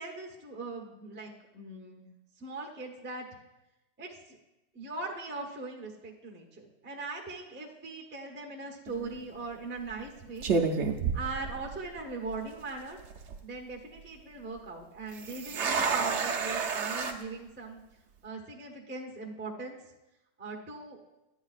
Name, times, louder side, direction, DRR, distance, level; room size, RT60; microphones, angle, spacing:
voice 1, 0.0-3.3 4.0-4.4 4.7-10.5 11.1-13.0 13.4-17.8 18.2-19.8 20.4-21.0, right 3 dB, 15° right, 0 dB, 0.4 m, -40 dB
sound 1, 8.9-9.2 9.9-10.1 10.4-12.0 12.3-12.4 13.0-13.4 15.1-17.1, right 5 dB, 85° right, 0.6 m, -30 dB
11.5 x 9.1 x 2.4 m, 0.98 s
omnidirectional pair, 2.1 m